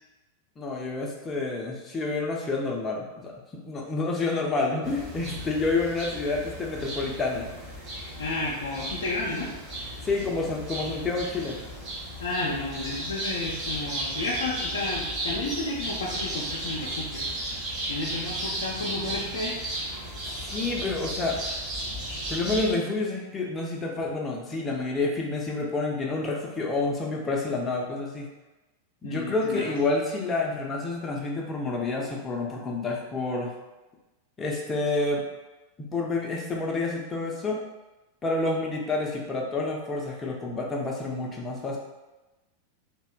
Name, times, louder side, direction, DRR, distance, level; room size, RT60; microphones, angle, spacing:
voice 1, 0.6-7.5 10.0-11.6 20.4-21.4 22.3-28.3 29.0-33.5 34.4-35.3 35.8-37.6 38.2-41.8, left 3 dB, 20° left, -1 dB, 0.6 m, -29 dB
sound 1, 4.8-22.7, right 1 dB, 30° right, 1.3 m, -34 dB
voice 2, 8.2-9.5 12.2-17.6 17.9-19.6 29.0-29.7, left 2 dB, 65° left, -5 dB, 0.5 m, -32 dB
3.3 x 2.8 x 2.3 m, 1.1 s
figure-of-eight pair, 90°, 0 cm